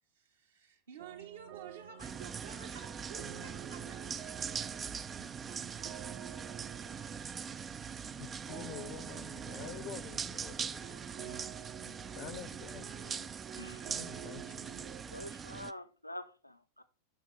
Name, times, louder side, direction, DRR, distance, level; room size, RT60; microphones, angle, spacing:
voice 1, 0.0-4.9, right 8 dB, 65° right, 1.4 m, -52 dB
sound 1, 1.0-15.0, right 11 dB, 45° right, 0.8 m, -51 dB
sound 2, 2.0-15.7, right 6 dB, 20° right, 0.3 m, -42 dB
voice 2, 8.2-11.0 12.1-13.0 13.8-14.7 15.1-15.3, left 11 dB, 40° left, 0.7 m, -48 dB
voice 3, 12.9-13.3 13.6-14.0 15.1-16.8, left 1 dB, 90° left, 0.7 m, -47 dB
6.8 x 5.9 x 4.9 m
figure-of-eight pair, 90°, 0 cm